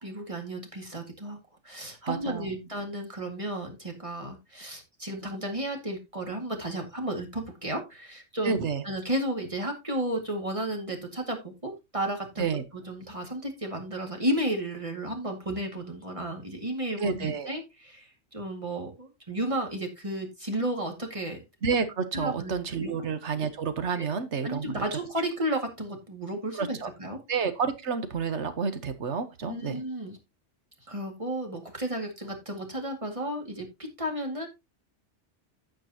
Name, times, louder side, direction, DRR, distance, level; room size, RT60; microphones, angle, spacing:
voice 1, 0.0-8.6 8.8-12.6 12.8-21.4 22.1-22.5 22.8-22.9 23.9-24.1 24.4-27.2 29.4-30.2 30.9-34.5, right 1 dB, 30° right, 3 dB, 2.1 m, -33 dB
voice 2, 2.1-2.5 8.4-8.8 12.4-12.6 17.0-17.5 21.6-25.0 26.5-26.9 27.3-29.8, right 5 dB, 75° right, 10 dB, 1.4 m, -30 dB
15.5 x 5.2 x 2.9 m, 0.23 s
omnidirectional pair, 1.2 m